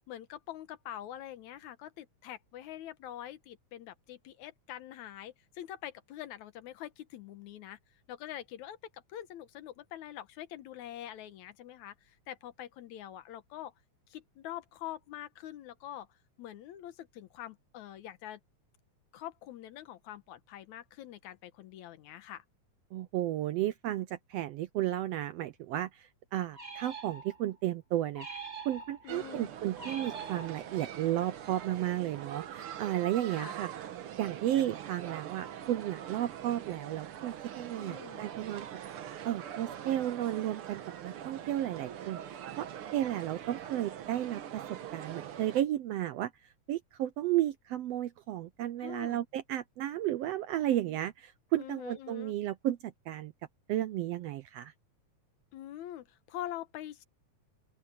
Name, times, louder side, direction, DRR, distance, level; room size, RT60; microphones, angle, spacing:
voice 1, 0.1-7.8 8.1-13.7 14.1-16.1 16.4-18.4 19.1-22.4 29.0-29.5 33.3-33.5 37.8-38.3 48.8-49.2 51.6-52.3 55.5-57.0, left 12 dB, 75° left, 2.4 m, -45 dB
voice 2, 22.9-33.7 34.2-38.7 39.2-42.7 42.9-44.6 44.9-46.3 46.7-53.3 53.7-54.7, right 13 dB, 80° right, 1.5 m, -33 dB
sound 1, 26.5-27.6 28.1-29.2 29.8-31.0, right 5 dB, 20° right, 2.3 m, -44 dB
sound 2, 29.1-45.6, right 10 dB, 60° right, 1.7 m, -43 dB
open air
omnidirectional pair, 3.4 m